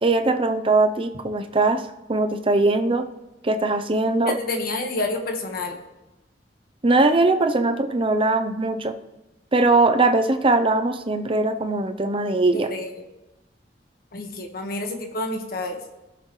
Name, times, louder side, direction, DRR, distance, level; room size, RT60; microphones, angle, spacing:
voice 1, 0.0-3.1 3.4-4.4 6.8-9.0 9.5-12.7, right 2 dB, 30° right, 7 dB, 0.7 m, -21 dB
voice 2, 4.3-5.8 12.5-12.9 14.1-15.8, left 2 dB, 55° left, 3 dB, 1.6 m, -28 dB
17.5 x 6.9 x 3.2 m, 1.0 s
head